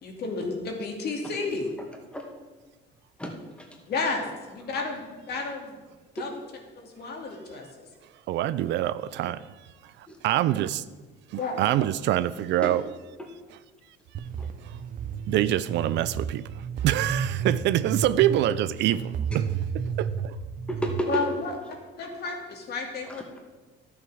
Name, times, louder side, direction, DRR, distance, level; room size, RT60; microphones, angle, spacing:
voice 1, 0.0-1.7 3.9-4.2 4.5-5.0 5.3-5.8 6.1-6.3 6.8-7.7 11.4-11.6 21.1-21.5 22.0-23.2, left 3 dB, 55° left, 1 dB, 2.5 m, -31 dB
voice 2, 8.3-9.5 9.8-10.8 11.3-12.8 14.6-14.8 15.3-19.5 20.0-20.4, right 13 dB, 65° right, 16 dB, 0.5 m, -26 dB
sound 1, 14.1-21.0, right 7 dB, 45° right, 0.8 m, -32 dB
voice 3, 20.7-21.2 23.1-23.4, equal, 5° left, 1 dB, 2.1 m, -32 dB
12.0 x 7.2 x 6.2 m, 1.3 s
cardioid pair, 115°, 20 cm